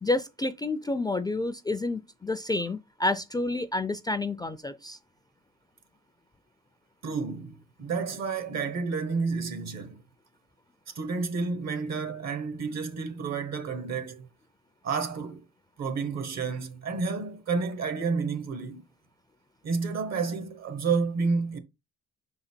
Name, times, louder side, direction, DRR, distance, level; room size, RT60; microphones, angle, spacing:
voice 1, 0.0-5.0, left 2 dB, 15° left, 0.4 m, -29 dB
voice 2, 7.0-10.0 10.9-14.3 14.8-15.4 15.8-18.8 19.6-21.6, right 4 dB, 60° right, 1.1 m, -30 dB
5.5 x 4.0 x 4.3 m
cardioid pair, 90°, 30 cm